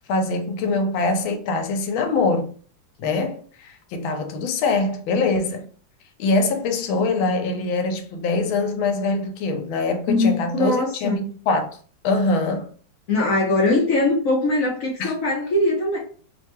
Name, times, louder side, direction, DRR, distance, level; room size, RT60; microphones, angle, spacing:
voice 1, 0.1-2.5 3.0-5.7 6.2-11.8 12.0-12.7 15.0-15.1, left 3 dB, 80° left, 1.4 m, -23 dB
voice 2, 10.1-11.2 13.1-16.0, left 2 dB, 65° left, 0.8 m, -21 dB
3.4 x 2.1 x 2.9 m
omnidirectional pair, 2.1 m